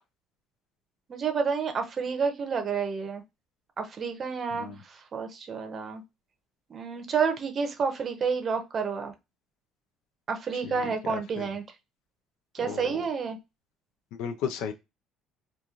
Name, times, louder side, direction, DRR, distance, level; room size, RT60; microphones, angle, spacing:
voice 1, 1.1-3.2 3.8-6.0 6.7-9.1 10.3-11.6 12.5-13.4, right 5 dB, 35° right, 6 dB, 0.6 m, -30 dB
voice 2, 11.1-11.5 12.6-13.0 14.1-14.7, left 7 dB, 80° left, 9 dB, 0.5 m, -35 dB
2.9 x 2.5 x 2.4 m, 0.23 s
cardioid pair, 130°, 0 cm